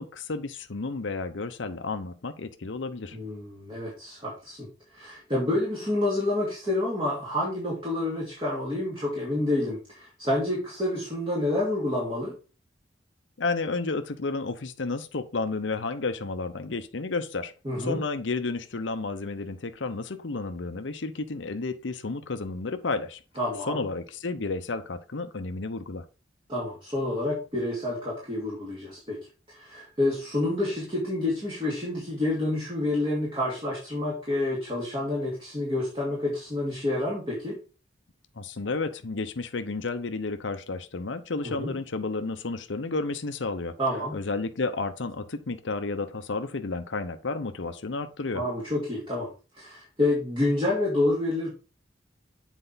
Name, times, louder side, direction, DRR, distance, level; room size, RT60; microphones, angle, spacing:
voice 1, 0.0-3.2 13.4-23.2 23.7-26.1 38.4-43.8 44.1-48.4, left 3 dB, 80° left, 0.8 m, -32 dB
voice 2, 3.1-4.7 4.9-12.4 17.6-18.0 23.4-23.9 26.5-29.2 29.5-37.6 41.4-41.7 43.8-44.2 48.3-49.3 49.6-51.5, left 1 dB, 25° right, 2.5 m, -28 dB
7.9 x 4.6 x 4.0 m
head